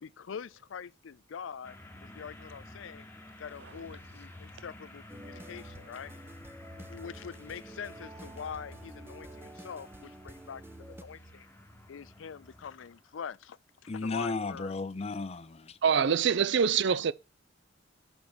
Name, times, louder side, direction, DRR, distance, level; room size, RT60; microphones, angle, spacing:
voice 1, 0.0-1.8 2.0-3.1 3.4-6.1 6.9-11.5 11.9-13.6 13.8-14.7, left 7 dB, 85° left, 0.4 m, -44 dB
sound 1, 1.6-13.1, left 1 dB, 10° left, 1.0 m, -50 dB
sound 2, 5.1-11.0, right 1 dB, 10° right, 0.6 m, -50 dB
voice 2, 13.9-15.8, left 3 dB, 35° left, 0.6 m, -34 dB
voice 3, 15.8-17.1, right 6 dB, 65° right, 0.5 m, -24 dB
6.1 x 5.3 x 6.1 m
head